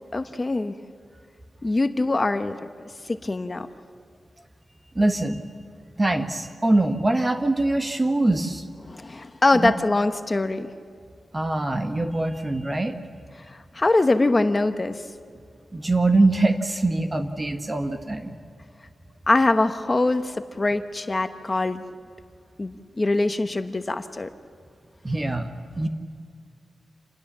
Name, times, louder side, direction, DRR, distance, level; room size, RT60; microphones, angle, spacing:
voice 1, 0.1-0.8 1.6-2.7 3.0-3.7 8.8-10.7 13.5-15.0 19.3-21.8 22.6-24.3, left 2 dB, 25° left, 9 dB, 1.0 m, -23 dB
voice 2, 4.9-5.4 6.0-8.6 9.5-9.7 11.3-13.0 15.7-18.4 25.0-25.5 25.8-25.9, right 2 dB, 25° right, 7 dB, 1.2 m, -23 dB
27.5 x 20.5 x 7.4 m, 2.2 s
wide cardioid pair, 105°, 0 cm